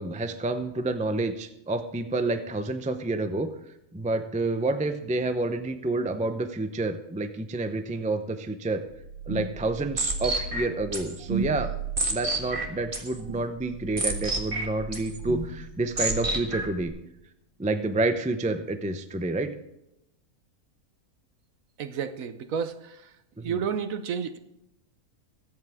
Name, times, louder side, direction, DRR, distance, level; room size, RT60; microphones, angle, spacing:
voice 1, 0.0-3.5 3.9-8.8 9.3-11.7 12.1-16.9 17.6-19.5 23.4-23.6, right 2 dB, 10° right, 8 dB, 0.4 m, -29 dB
sound 1, 8.9-16.9, right 2 dB, 35° right, 1.7 m, -31 dB
voice 2, 21.8-23.1 23.4-24.4, right 7 dB, 65° right, 10 dB, 1.2 m, -31 dB
22.5 x 8.1 x 3.6 m, 0.85 s
omnidirectional pair, 1.6 m